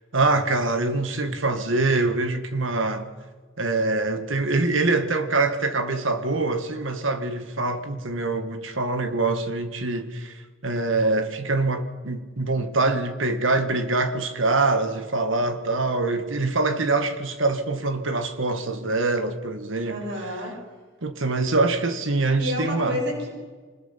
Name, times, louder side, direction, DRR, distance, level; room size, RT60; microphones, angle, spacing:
voice 1, 0.1-3.1 3.6-20.0 21.0-23.0, right 3 dB, 75° right, 1.8 m, -24 dB
voice 2, 19.9-20.5 22.4-23.3, left 1 dB, 55° right, 6.3 m, -29 dB
25.0 x 20.5 x 5.8 m
head